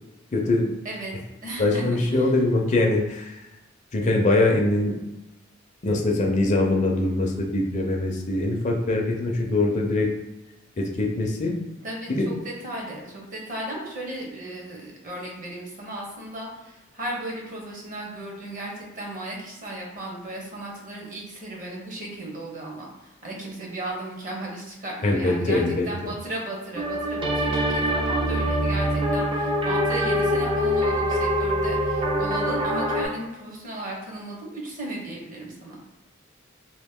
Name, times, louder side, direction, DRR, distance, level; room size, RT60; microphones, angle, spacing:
voice 1, 0.3-0.7 1.6-3.4 3.9-5.0 5.8-10.1 10.8-11.6 12.1-12.3 25.0-25.9, left 2 dB, 35° left, 0 dB, 0.5 m, -23 dB
voice 2, 1.4-2.3 11.8-35.8, right 1 dB, 40° right, -2 dB, 0.9 m, -35 dB
sound 1, 26.7-33.0, equal, 25° right, 0.5 m, -24 dB
3.0 x 2.5 x 3.5 m, 0.98 s
head